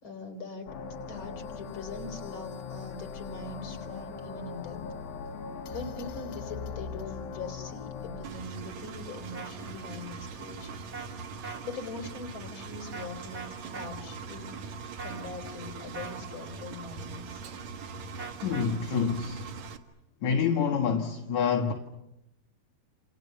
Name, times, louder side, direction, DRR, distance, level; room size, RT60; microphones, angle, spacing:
voice 1, 0.0-4.8 5.6-10.8 11.6-14.7 15.0-17.4, left 3 dB, 35° left, 4.3 m, -42 dB
sound 1, 0.7-8.3, left 5 dB, 75° left, 3.4 m, -40 dB
Engine, 8.2-19.8, right 5 dB, 55° right, 2.6 m, -42 dB
sound 2, 9.3-9.5 10.9-11.1 11.4-11.6 12.9-13.1 13.3-13.9 15.0-15.3 15.9-16.2 18.2-18.7, right 5 dB, 25° right, 1.7 m, -40 dB
voice 2, 18.4-19.5 20.2-21.7, left 6 dB, 55° left, 2.7 m, -27 dB
30.0 x 28.5 x 6.9 m
omnidirectional pair, 4.3 m